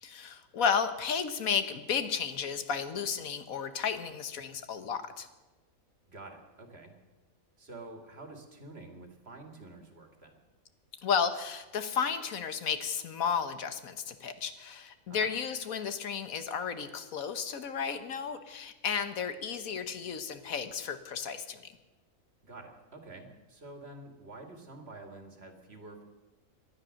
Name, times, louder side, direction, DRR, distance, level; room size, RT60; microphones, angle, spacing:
voice 1, 0.0-5.3 11.0-21.7, left 6 dB, 80° left, 10 dB, 1.5 m, -33 dB
voice 2, 6.1-6.9 7.6-10.4 15.1-15.3 22.4-26.0, right 2 dB, 45° right, 4 dB, 2.3 m, -48 dB
18.5 x 12.0 x 6.4 m, 1.1 s
omnidirectional pair, 1.5 m